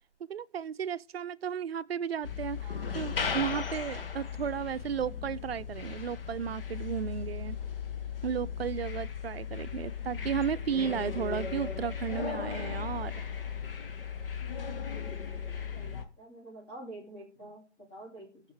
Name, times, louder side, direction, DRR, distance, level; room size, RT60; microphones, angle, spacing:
voice 1, 0.2-7.6 8.2-13.1, right 8 dB, 60° right, 0.5 m, -34 dB
sound 1, 2.2-16.0, left 7 dB, 55° left, 1.2 m, -36 dB
voice 2, 2.6-2.9 9.9-10.4 15.7-18.4, right 1 dB, 20° left, 2.9 m, -48 dB
19.0 x 6.5 x 3.3 m
hypercardioid pair, 160°, 35 cm